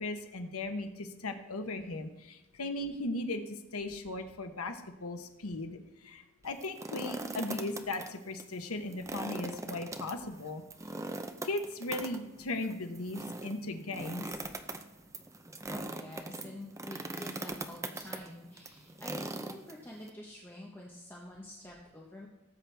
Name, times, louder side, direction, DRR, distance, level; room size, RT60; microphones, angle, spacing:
voice 1, 0.0-3.4 3.7-5.8 6.0-10.6 11.4-14.3, left 2 dB, 90° left, 6 dB, 1.1 m, -37 dB
sound 1, 6.5-8.1 8.4-8.5 8.9-20.1, right 2 dB, 15° right, 0.5 m, -41 dB
voice 2, 15.7-22.3, left 1 dB, 10° left, -3 dB, 1.1 m, -47 dB
18.0 x 7.8 x 3.4 m, 0.97 s
head